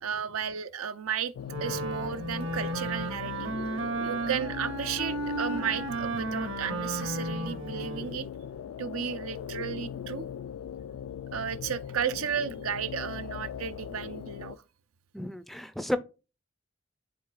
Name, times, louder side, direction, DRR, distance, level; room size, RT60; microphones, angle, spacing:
voice 1, 0.0-1.3 1.6-3.5 4.0-8.3 8.8-10.2 11.3-14.6, right 8 dB, 90° right, 0.6 m, -33 dB
sound 1, 1.3-14.6, left 8 dB, 85° left, 0.3 m, -40 dB
Wind instrument woodwind instrument, 1.5-8.2, right 2 dB, 60° right, 0.9 m, -34 dB
voice 2, 15.1-16.0, left 1 dB, ahead, 0.3 m, -32 dB
11.5 x 3.8 x 2.4 m
head